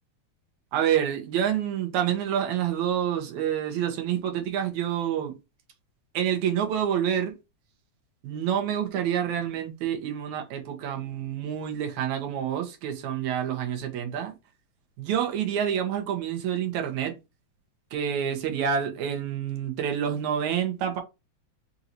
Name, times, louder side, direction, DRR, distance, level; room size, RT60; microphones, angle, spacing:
voice 1, 0.7-5.3 6.1-7.3 8.2-14.3 15.0-17.2 17.9-21.0, right 9 dB, 85° right, 2.5 m, -28 dB
5.5 x 2.6 x 2.9 m
omnidirectional pair, 3.3 m